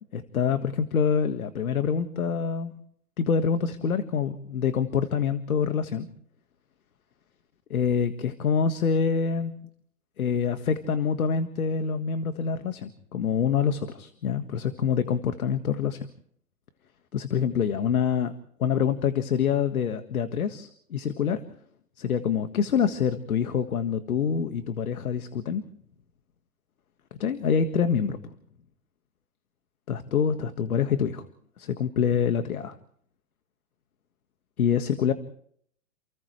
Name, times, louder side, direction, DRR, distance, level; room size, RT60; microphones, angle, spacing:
voice 1, 0.1-2.7 3.2-6.1 7.7-9.5 10.2-16.1 17.1-18.3 18.6-21.4 22.0-25.6 27.1-28.3 29.9-31.3 31.6-32.8 34.6-35.1, left 7 dB, 85° left, 8 dB, 1.8 m, -26 dB
29.5 x 29.0 x 3.3 m, 0.66 s
hypercardioid pair, 135°, 42 cm